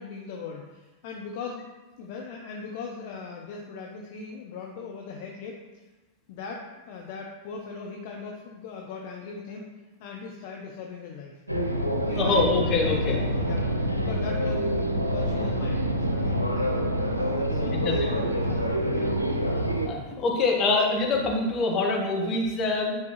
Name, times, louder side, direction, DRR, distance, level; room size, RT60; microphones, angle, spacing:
voice 1, 0.0-1.7 2.0-5.6 6.3-9.7 10.0-11.4 11.9-17.2 17.5-19.1, left 5 dB, 50° left, 0 dB, 0.8 m, -39 dB
sound 1, 11.5-19.9, equal, 90° right, 0.7 m, -26 dB
voice 2, 12.1-13.2 17.7-18.1 19.8-23.0, left 3 dB, 30° left, -1 dB, 1.7 m, -25 dB
9.5 x 5.1 x 3.2 m, 1.2 s
figure-of-eight pair, 90°, 0 cm